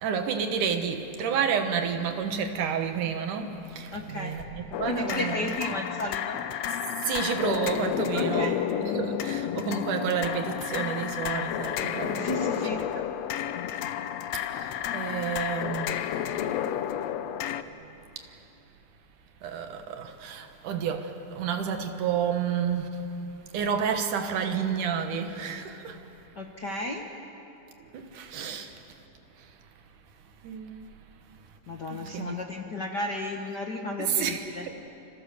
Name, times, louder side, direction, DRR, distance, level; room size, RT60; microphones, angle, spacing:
voice 1, 0.0-5.6 7.0-13.0 14.5-16.1 19.4-23.0 23.5-26.0 27.9-28.7 30.4-30.9 31.9-32.3 34.0-34.4, right 7 dB, 75° right, 2.9 m, -30 dB
voice 2, 3.9-4.4 4.9-6.4 8.1-8.6 12.2-12.8 26.4-27.0 31.7-34.6, left 1 dB, 50° left, 1.3 m, -33 dB
sound 1, 4.7-17.6, left 10 dB, 70° left, 1.6 m, -31 dB
29.0 x 27.5 x 6.9 m
omnidirectional pair, 3.7 m